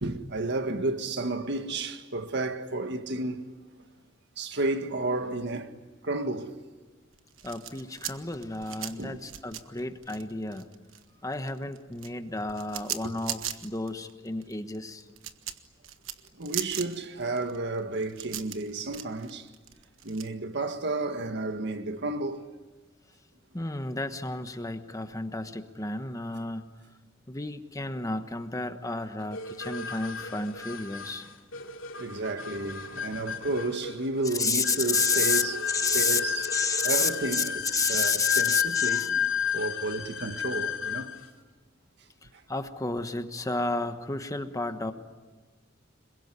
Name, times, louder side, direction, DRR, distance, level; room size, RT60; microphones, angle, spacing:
voice 1, 0.0-3.5 4.4-6.6 9.0-9.2 16.4-19.5 20.0-22.4 32.0-35.6 35.9-41.2 42.3-42.4, right 2 dB, 60° right, 1.8 m, -32 dB
sound 1, 7.1-11.0 11.3-20.3, right 11 dB, 85° right, 1.3 m, -38 dB
voice 2, 7.4-10.7 11.2-15.0 23.5-26.7 27.3-31.3 34.4-35.4 35.7-36.2 36.5-37.4 37.7-39.1 42.5-44.9, left 3 dB, 15° left, 1.3 m, -31 dB
sound 2, 29.3-41.3, left 7 dB, 85° left, 2.7 m, -32 dB
26.5 x 22.5 x 9.8 m
head